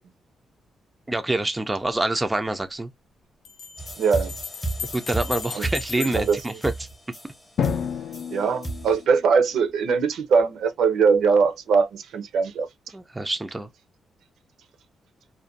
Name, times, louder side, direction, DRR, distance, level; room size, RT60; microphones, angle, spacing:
voice 1, 1.1-2.9 4.9-6.9 12.9-13.7, right 2 dB, 15° right, 0.3 m, -26 dB
sound 1, 1.8-1.9 3.4-7.4, left 7 dB, 85° left, 0.7 m, -38 dB
sound 2, 3.8-9.0, right 2 dB, 15° left, 0.7 m, -33 dB
voice 2, 4.0-4.3 5.6-5.7 6.0-6.4 8.3-12.7, right 5 dB, 80° right, 0.5 m, -21 dB
Drum, 7.6-10.1, left 8 dB, 65° left, 0.4 m, -31 dB
2.4 x 2.1 x 2.5 m
cardioid pair, 135°, 0 cm